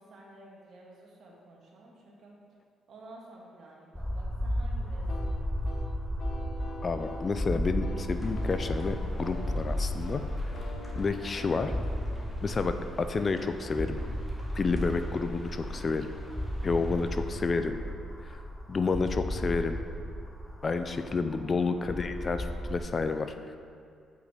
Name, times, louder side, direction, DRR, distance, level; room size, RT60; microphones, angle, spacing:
voice 1, 0.0-2.4 2.9-6.0 14.8-15.0 21.4-21.6, right 2 dB, 60° right, -3 dB, 1.7 m, -52 dB
sound 1, 4.0-22.8, equal, 5° left, 0.9 m, -34 dB
sound 2, 5.1-13.7, left 2 dB, 70° left, 1.2 m, -46 dB
voice 2, 6.8-10.2 11.0-11.7 12.4-14.0 14.5-16.1 16.6-17.8 18.3-18.4 18.7-19.8 20.6-23.6, left 4 dB, 35° left, 8 dB, 0.4 m, -30 dB
sound 3, 8.1-17.4, equal, 20° left, 1.8 m, -53 dB
8.0 x 5.9 x 4.2 m, 2.3 s
cardioid pair, 90°, 0 cm